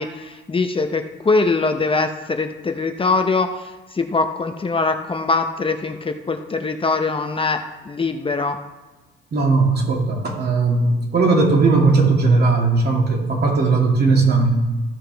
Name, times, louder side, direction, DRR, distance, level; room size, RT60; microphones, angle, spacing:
voice 1, 0.0-8.6, left 3 dB, 25° left, 6 dB, 0.7 m, -22 dB
voice 2, 9.3-14.6, right 3 dB, 55° right, -1 dB, 2.5 m, -17 dB
15.0 x 5.7 x 3.4 m, 1.2 s
cardioid pair, 90°, 20 cm